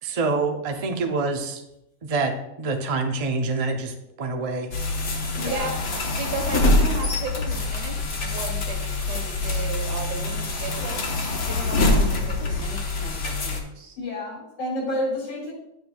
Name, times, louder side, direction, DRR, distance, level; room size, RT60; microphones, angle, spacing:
voice 1, 0.0-1.6 2.0-4.7, right 3 dB, 55° right, 4 dB, 0.4 m, -26 dB
sound 1, 4.7-13.6, left 2 dB, 50° left, 1.2 m, -25 dB
voice 2, 5.4-5.8 14.0-15.5, left 1 dB, 75° left, -3 dB, 3.5 m, -29 dB
voice 3, 6.1-11.0 11.3-14.0, right 3 dB, 75° right, 2 dB, 1.8 m, -35 dB
9.6 x 6.7 x 2.3 m, 0.83 s
omnidirectional pair, 1.8 m